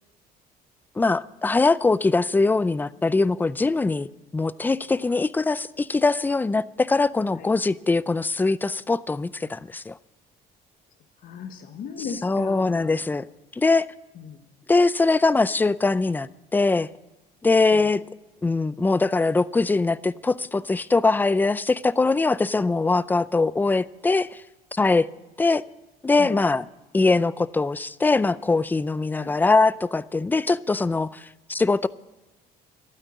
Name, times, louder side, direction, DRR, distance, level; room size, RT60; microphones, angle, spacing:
voice 1, 1.0-4.1 4.3-10.0 12.2-13.2 13.5-13.9 14.7-16.9 17.4-18.0 18.4-24.4 24.7-25.1 25.4-25.6 26.0-26.6 26.9-31.9, left 3 dB, 10° left, 0.4 m, -22 dB
voice 2, 11.2-13.0 14.1-14.4 17.7-17.9 26.2-26.4 29.2-29.3, left 6 dB, 60° left, 1.2 m, -37 dB
12.5 x 9.2 x 9.8 m
cardioid pair, 110°, 17 cm